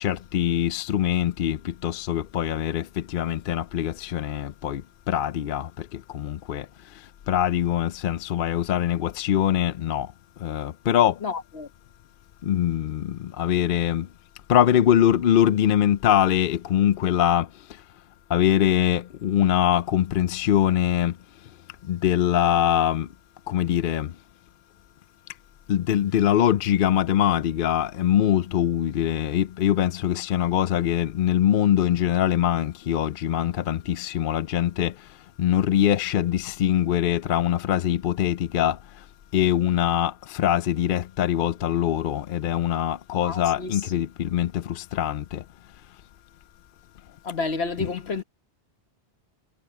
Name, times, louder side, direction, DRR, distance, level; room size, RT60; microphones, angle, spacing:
voice 1, 0.0-1.6 1.8-2.8 3.1-4.8 5.1-5.7 6.1-6.6 7.3-10.1 10.4-11.1 12.5-14.0 14.5-17.5 18.3-21.1 21.9-23.1 23.5-24.1 25.7-34.9 35.4-38.8 39.3-45.2 47.8-47.9, left 11 dB, 65° left, 0.7 m, -23 dB
voice 2, 11.2-11.7 43.2-44.0 47.2-48.2, left 4 dB, 85° left, 1.6 m, -30 dB
omnidirectional pair, 1.1 m